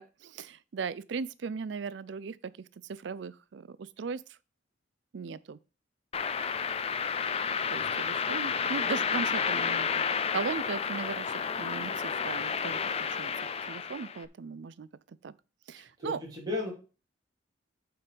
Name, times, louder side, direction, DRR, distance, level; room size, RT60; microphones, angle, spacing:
voice 1, 0.0-2.5 2.9-4.2 5.1-5.6 7.7-13.3 13.7-14.9 15.2-15.3 15.7-16.2, right 5 dB, 70° right, 0.4 m, -38 dB
sound 1, 6.1-14.2, left 6 dB, 35° left, 0.5 m, -31 dB
voice 2, 15.8-16.7, left 2 dB, 20° right, 3.2 m, -36 dB
8.6 x 4.5 x 5.0 m
head